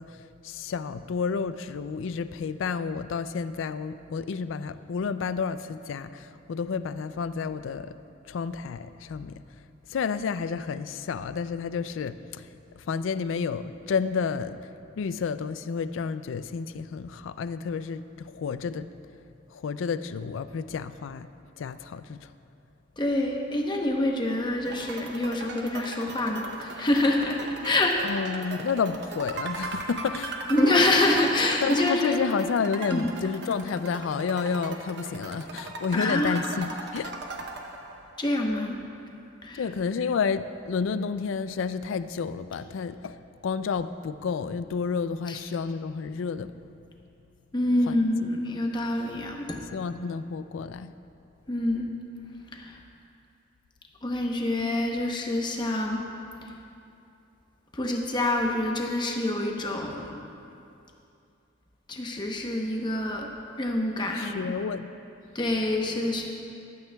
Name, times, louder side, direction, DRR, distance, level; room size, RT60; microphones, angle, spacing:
voice 1, 0.0-7.9 8.3-9.4 9.9-12.5 12.8-14.7 15.0-18.9 19.5-21.3 21.6-22.3 28.0-30.4 31.6-37.1 39.5-46.5 47.9-48.0 48.2-48.3 49.7-50.9 64.1-64.9, left 5 dB, 80° left, 13 dB, 0.4 m, -30 dB
voice 2, 23.0-28.2 30.5-32.2 32.9-33.1 35.9-36.4 38.2-38.8 39.4-39.6 45.3-45.4 47.5-49.6 51.5-51.9 52.5-52.8 54.0-56.0 57.7-60.2 61.9-63.3 63.6-64.4 65.3-66.3, left 1 dB, 25° left, 1 dB, 0.9 m, -26 dB
sound 1, 24.6-38.3, right 3 dB, 60° right, 0.8 m, -38 dB
15.0 x 12.0 x 2.3 m, 2.6 s
head